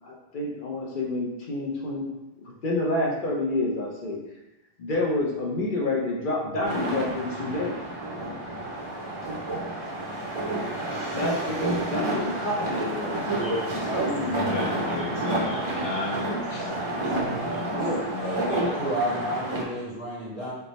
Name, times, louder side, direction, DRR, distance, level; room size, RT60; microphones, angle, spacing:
voice 1, 0.0-2.1 2.6-4.2 4.8-7.8 11.1-13.2 14.0-14.7 17.7-18.1, left 2 dB, 55° left, -2 dB, 0.8 m, -28 dB
sound 1, 6.6-19.6, right 1 dB, 40° right, 0.5 m, -30 dB
voice 2, 13.9-16.9 17.4-18.8, equal, 70° left, -7 dB, 1.3 m, -34 dB
voice 3, 18.7-20.5, right 1 dB, 30° left, -9 dB, 1.5 m, -30 dB
3.3 x 2.0 x 3.9 m, 0.94 s
omnidirectional pair, 1.1 m